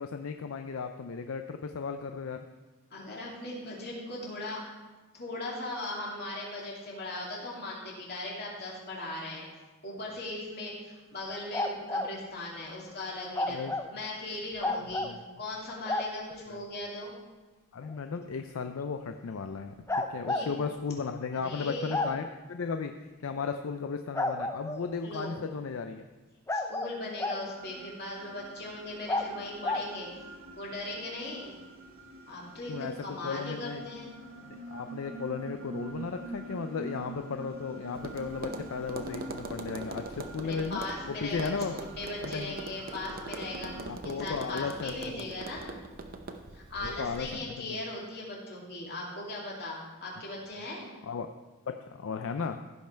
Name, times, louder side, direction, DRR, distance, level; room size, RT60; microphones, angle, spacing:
voice 1, 0.0-2.4 13.5-13.7 15.0-15.2 16.5-16.6 17.7-22.9 23.2-26.0 32.7-33.8 34.5-40.8 41.1-41.8 42.2-42.6 43.8-45.2 46.8-47.8 51.0-51.3 51.7-52.6, left 5 dB, 65° left, 7 dB, 0.4 m, -35 dB
voice 2, 2.9-4.7 5.1-9.5 9.8-13.6 13.9-15.0 15.4-17.1 20.3-20.5 21.4-22.0 25.0-25.3 26.5-30.1 30.6-31.6 32.3-34.1 40.4-45.8 46.5-50.9, left 2 dB, 45° left, -4 dB, 2.6 m, -39 dB
sound 1, 11.5-12.1 13.3-13.9 14.6-15.1 15.9-16.1 17.9-18.0 19.9-20.5 21.9-22.1 24.1-24.8 26.5-27.4 29.1-29.3 29.6-29.9, left 2 dB, 15° left, 0.5 m, -30 dB
sound 2, 27.6-43.9, right 1 dB, 65° right, 1.5 m, -45 dB
Tap, 37.9-47.3, right 3 dB, 40° right, 0.7 m, -42 dB
15.5 x 5.5 x 4.5 m, 1.2 s
head